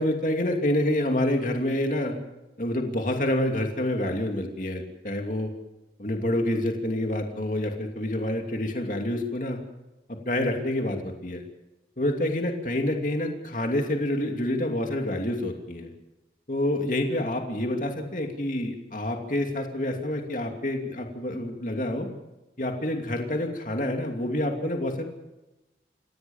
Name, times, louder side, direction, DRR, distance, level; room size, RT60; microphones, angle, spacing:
voice 1, 0.0-2.1 2.6-5.5 6.0-9.6 10.2-11.4 12.0-15.9 16.5-22.1 22.6-25.0, left 1 dB, 45° left, 3 dB, 2.8 m, -27 dB
28.5 x 16.5 x 7.3 m, 1.0 s
head